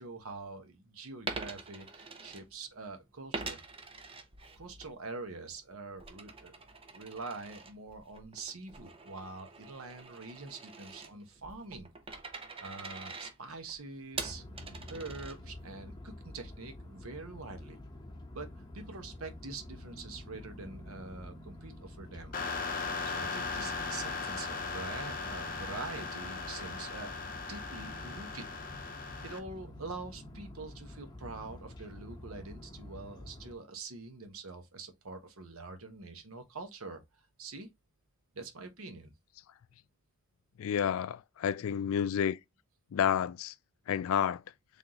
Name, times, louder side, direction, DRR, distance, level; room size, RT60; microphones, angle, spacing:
voice 1, 0.0-3.6 4.6-6.6 6.9-11.9 12.6-14.5 14.9-17.8 18.3-22.4 23.1-28.4 28.7-37.0 37.4-37.7 38.3-39.1, right 3 dB, 65° right, 1.0 m, -45 dB
Coin (dropping), 1.2-2.9 3.3-4.9 5.3-15.7, right 4 dB, 25° right, 0.7 m, -44 dB
sound 1, 14.1-33.5, left 1 dB, 20° left, 1.1 m, -48 dB
sound 2, 22.3-29.4, left 4 dB, 40° left, 0.7 m, -38 dB
voice 2, 40.6-42.4 42.9-43.5 43.9-44.4, left 8 dB, 65° left, 0.3 m, -30 dB
3.9 x 3.4 x 2.9 m
head